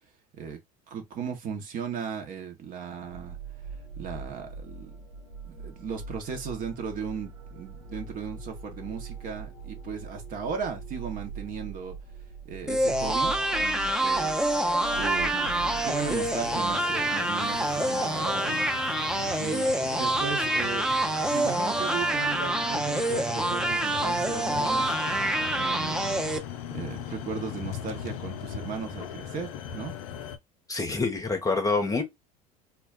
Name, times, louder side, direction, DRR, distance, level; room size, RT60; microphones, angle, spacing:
voice 1, 0.9-3.4 4.0-5.1 5.4-11.9 12.4-14.4 14.9-18.7 19.4-20.9 21.3-26.0 26.7-29.9, right 6 dB, 45° right, 0.9 m, -36 dB
sound 1, 3.0-16.8, right 5 dB, 90° right, 1.0 m, -42 dB
sound 2, 12.7-26.4, right 1 dB, 5° right, 0.5 m, -26 dB
sound 3, 15.4-30.4, left 9 dB, 70° left, 0.5 m, -39 dB
voice 2, 30.7-32.0, left 3 dB, 20° left, 0.8 m, -26 dB
2.3 x 2.2 x 3.6 m
hypercardioid pair, 75°, 19 cm